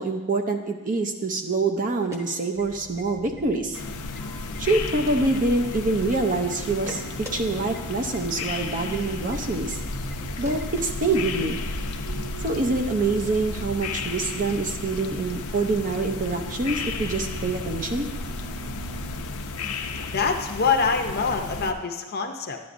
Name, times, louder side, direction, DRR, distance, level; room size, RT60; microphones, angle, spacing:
voice 1, 0.0-3.8 4.6-7.0 7.3-9.8 10.4-11.6 12.4-18.1, right 3 dB, 35° right, 5 dB, 0.6 m, -25 dB
sound 1, 1.9-3.0 3.3-3.4 3.8-4.2 4.5-6.2 6.5-7.4 7.7-7.8 8.1-8.2 8.5-8.6 8.9-9.0 9.3-9.4 9.7-9.8 10.1-10.2 10.4-11.5, left 1 dB, 15° right, 1.0 m, -42 dB
sound 2, 2.6-19.3, right 3 dB, 90° right, 0.7 m, -43 dB
sound 3, 3.7-21.7, left 3 dB, 80° left, 0.7 m, -33 dB
voice 2, 20.1-22.6, left 5 dB, 45° left, 4 dB, 0.7 m, -25 dB
11.5 x 9.5 x 2.6 m, 1.3 s
head